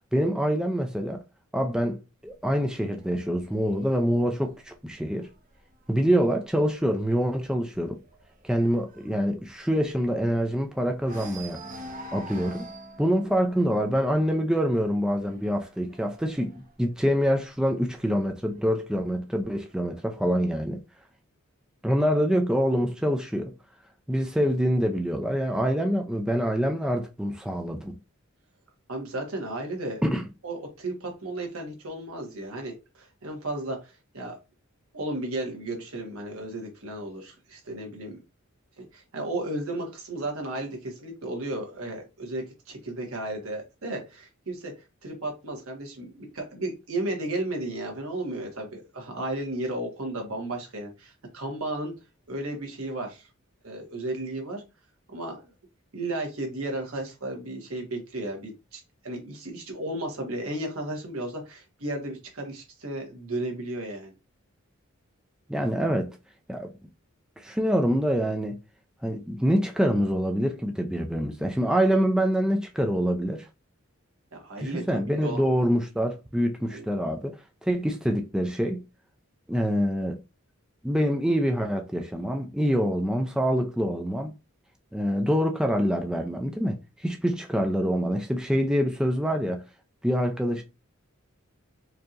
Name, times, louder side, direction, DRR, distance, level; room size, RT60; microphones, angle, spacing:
voice 1, 0.1-1.2 1.5-5.3 5.9-8.0 8.4-11.6 12.1-12.7 13.0-20.8 21.8-23.5 24.1-27.9 30.0-30.2 65.5-66.2 66.5-66.7 67.4-68.6 69.0-73.5 74.6-78.8 79.5-80.2 80.8-84.3 84.9-89.6 90.0-90.6, equal, 5° right, 0.4 m, -25 dB
sound 1, 2.3-5.9 6.3-6.6 6.9-7.0 7.4-10.6 11.0-17.5 18.4-19.4, right 1 dB, 40° right, 0.7 m, -46 dB
voice 2, 28.9-30.0 30.4-34.4 34.9-38.2 38.8-44.7 45.0-51.9 52.3-53.3 53.6-54.6 55.1-55.4 55.9-64.1 74.3-74.8 75.2-75.4 76.7-76.8, right 1 dB, 75° right, 1.3 m, -34 dB
4.6 x 2.8 x 2.5 m
head